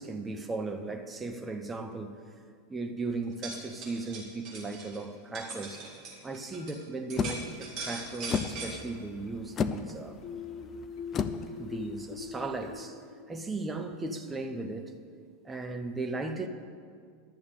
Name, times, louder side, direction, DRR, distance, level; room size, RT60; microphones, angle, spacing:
voice 1, 0.0-2.2 2.7-5.8 6.2-10.2 11.6-13.0 13.3-14.9 15.4-16.5, right 3 dB, 15° right, 5 dB, 1.0 m, -36 dB
sound 1, 3.2-6.8 7.1-8.7, right 3 dB, 40° right, 3.3 m, -41 dB
sound 2, 7.2-12.8, left 6 dB, 30° left, 0.5 m, -35 dB
sound 3, 10.2-13.9, left 5 dB, 55° left, 0.8 m, -42 dB
11.0 x 7.0 x 8.3 m, 2.2 s
figure-of-eight pair, 85°, 0 cm